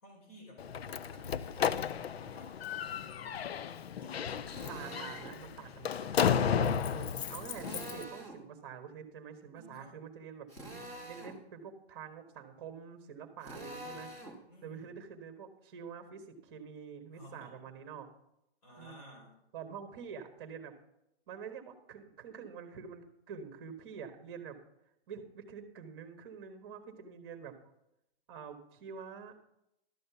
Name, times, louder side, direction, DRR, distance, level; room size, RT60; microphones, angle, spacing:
voice 1, 0.0-4.4 9.5-10.0 14.5-15.0 17.1-17.6 18.6-19.4, equal, 35° left, 0 dB, 4.3 m, -55 dB
Slam, 0.6-8.0, left 8 dB, 65° left, 0.6 m, -33 dB
voice 2, 4.4-10.5 11.0-14.1 14.6-18.1 18.8-19.0 19.5-20.7 21.3-24.6 25.1-27.6 28.3-29.4, right 7 dB, 25° right, 6 dB, 1.3 m, -47 dB
Drill, 4.5-5.4 7.5-8.4 10.5-11.4 13.4-14.4, right 1 dB, 10° left, 1.2 m, -45 dB
12.5 x 6.6 x 6.8 m, 0.81 s
hypercardioid pair, 175°, 33 cm